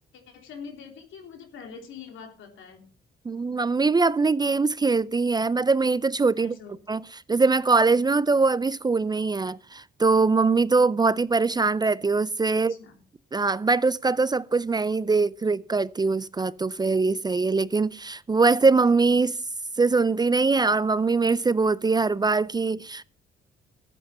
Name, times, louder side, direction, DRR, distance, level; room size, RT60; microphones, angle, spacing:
voice 1, 0.1-2.8 6.4-6.7 12.5-13.0, left 6 dB, 75° left, 3.3 m, -44 dB
voice 2, 3.3-6.5 6.9-7.0 7.3-12.7 13.3-19.4 19.8-23.0, right 4 dB, 20° right, 0.4 m, -22 dB
13.5 x 8.5 x 5.5 m
cardioid pair, 90°, 20 cm